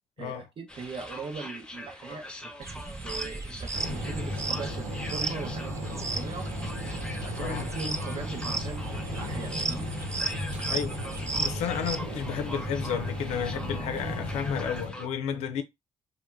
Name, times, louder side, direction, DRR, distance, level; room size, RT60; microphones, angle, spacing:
voice 1, 0.2-6.5 7.2-9.9, right 4 dB, 50° right, 0.7 m, -40 dB
sound 1, 0.7-15.1, left 1 dB, 10° left, 0.7 m, -43 dB
sound 2, 2.6-12.0, right 3 dB, 25° right, 0.4 m, -35 dB
sound 3, 3.7-14.9, left 1 dB, 90° right, 0.9 m, -35 dB
voice 2, 11.4-15.6, left 8 dB, 75° left, 0.4 m, -32 dB
2.2 x 2.0 x 3.1 m
hypercardioid pair, 45°, 12 cm